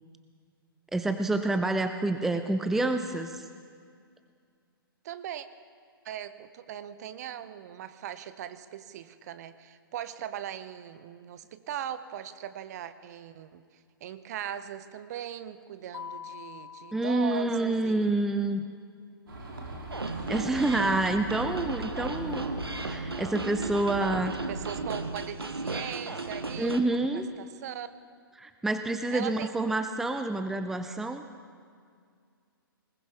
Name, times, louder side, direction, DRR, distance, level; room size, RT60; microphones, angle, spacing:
voice 1, 0.9-3.4 16.9-18.6 20.3-22.5 22.8-24.3 26.6-27.3 28.4-31.2, right 2 dB, 5° right, 8 dB, 0.5 m, -28 dB
voice 2, 5.0-5.5 6.0-13.6 14.0-18.1 24.5-27.9 29.1-29.5, right 10 dB, 45° right, 12 dB, 0.8 m, -39 dB
Mallet percussion, 15.9-18.0, left 8 dB, 70° left, 0.7 m, -45 dB
sound 1, 19.3-24.9, right 1 dB, 70° right, 3.0 m, -40 dB
sound 2, 19.9-26.8, right 3 dB, 85° right, 1.0 m, -35 dB
20.5 x 19.5 x 3.5 m, 2.2 s
figure-of-eight pair, 120°, 12 cm